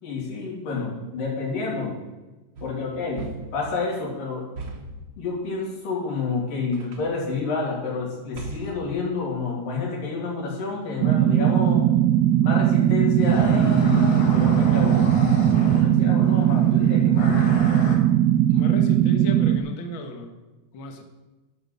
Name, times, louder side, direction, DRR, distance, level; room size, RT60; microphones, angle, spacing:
voice 1, 0.0-1.9 2.6-3.3 3.5-4.4 5.2-11.9 12.4-15.1 15.7-17.4, left 4 dB, 80° left, -3 dB, 4.4 m, -29 dB
sound 1, 2.6-3.7 4.6-5.1 6.7-7.2 8.3-9.0, right 3 dB, 60° right, 1.2 m, -38 dB
sound 2, 11.0-19.6, right 11 dB, 80° right, 1.8 m, -19 dB
sound 3, 13.2-16.2 17.2-18.0, left 2 dB, 45° left, 2.1 m, -29 dB
voice 2, 18.5-20.4 20.7-21.0, equal, 60° left, 4 dB, 1.3 m, -34 dB
11.0 x 6.6 x 6.6 m, 1.1 s
omnidirectional pair, 3.9 m